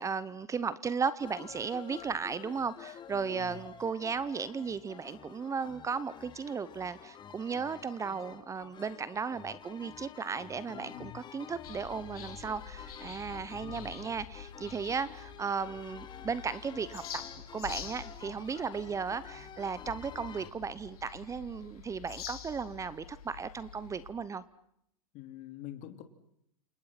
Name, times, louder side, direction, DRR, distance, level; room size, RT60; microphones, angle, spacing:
voice 1, 0.0-17.2 17.5-24.4, right 5 dB, 15° right, 18 dB, 0.9 m, -35 dB
sound 1, 1.2-20.5, left 8 dB, 25° left, 2.0 m, -50 dB
voice 2, 3.1-3.6 10.7-11.2 13.5-13.9 25.1-26.0, left 13 dB, 40° left, 7 dB, 3.5 m, -46 dB
sound 2, 11.6-24.1, left 8 dB, 75° left, 4.6 m, -47 dB
29.0 x 28.0 x 6.0 m, 0.74 s
hypercardioid pair, 120°, 19 cm